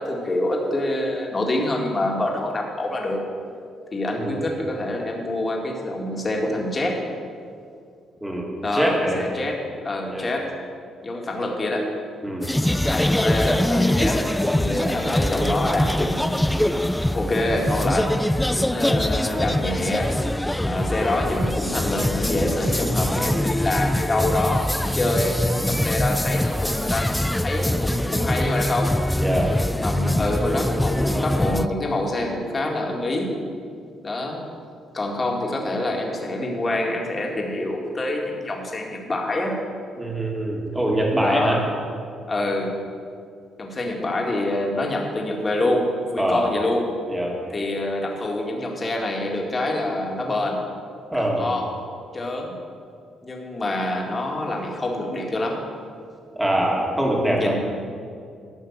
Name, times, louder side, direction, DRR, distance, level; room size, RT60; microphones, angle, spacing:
voice 1, 0.0-3.2 3.9-7.0 8.6-10.5 11.0-11.9 12.8-16.5 17.1-18.2 18.5-20.1 20.6-29.0 29.8-33.4 34.0-34.4 34.9-39.6 41.2-41.6 42.3-42.8 43.6-46.9 47.5-50.6 51.3-51.7 52.1-52.5 53.2-55.6 57.3-57.6, left 1 dB, 30° left, 0 dB, 1.9 m, -26 dB
voice 2, 4.1-4.5 8.2-9.2 10.1-10.3 12.2-12.5 29.2-29.5 40.0-41.6 46.2-46.5 47.1-47.4 51.1-51.5 56.4-57.6, right 1 dB, 10° right, -1 dB, 2.0 m, -23 dB
sound 1, 12.4-31.7, left 1 dB, 5° left, 0.3 m, -23 dB
12.0 x 5.7 x 7.3 m, 2.3 s
cardioid pair, 90°, 0 cm